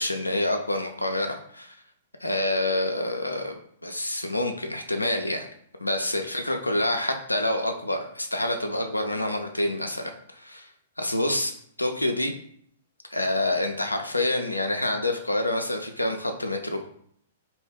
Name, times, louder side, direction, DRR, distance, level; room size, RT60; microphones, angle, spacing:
voice 1, 0.0-1.8 2.2-3.5 3.8-5.5 5.8-10.7 11.0-11.5 11.8-12.3 13.1-16.9, left 1 dB, 90° left, 5 dB, 0.3 m, -27 dB
2.6 x 2.2 x 3.3 m, 0.65 s
figure-of-eight pair, 110°, 0 cm